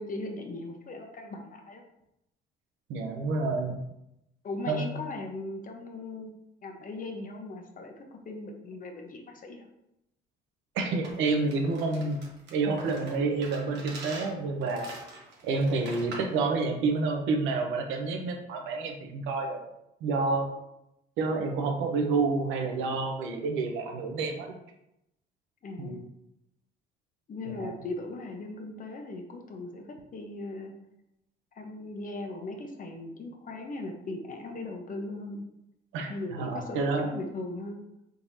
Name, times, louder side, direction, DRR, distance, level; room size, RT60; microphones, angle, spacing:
voice 1, 0.0-1.8 4.4-6.4 6.6-9.7 25.6-26.1 27.3-29.8 30.1-30.7 31.5-35.4 36.1-37.8, left 2 dB, 45° left, 3 dB, 0.9 m, -38 dB
voice 2, 2.9-3.8 4.7-4.9 10.7-12.2 12.5-14.9 15.4-19.6 20.0-20.5 21.2-24.5 25.8-25.9 27.5-27.7 35.9-37.1, right 3 dB, 80° right, 3 dB, 0.8 m, -29 dB
sound 1, 11.0-16.4, right 2 dB, 60° right, 1.2 m, -45 dB
4.5 x 3.8 x 2.7 m, 0.85 s
supercardioid pair, 80°, 20 cm